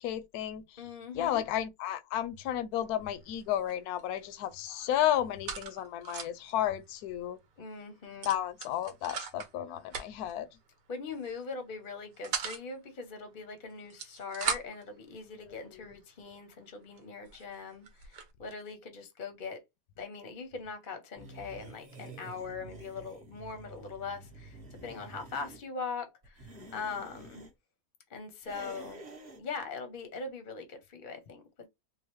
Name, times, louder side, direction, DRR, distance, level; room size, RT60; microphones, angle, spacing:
voice 1, 0.0-0.6 1.1-7.4 8.2-10.5 15.5-15.9, left 11 dB, 70° left, 1.0 m, -32 dB
voice 2, 0.8-1.4 7.6-8.3 10.9-19.6 20.0-27.4 28.1-29.1 29.4-31.7, left 4 dB, 45° left, 0.7 m, -41 dB
sound 1, 2.8-3.1 3.4-4.2 4.5-6.5 6.9-7.0 7.2-7.5 8.2-9.5 9.9-10.3 11.1-11.4 11.8-12.6 13.7-14.9 15.6-15.7 16.3-16.4 17.0-17.1 17.3-18.3, right 6 dB, 60° right, 1.1 m, -38 dB
sound 2, 21.2-25.6 26.2-27.5 28.4-29.4, right 2 dB, 30° right, 0.9 m, -49 dB
3.8 x 2.5 x 3.1 m
omnidirectional pair, 1.9 m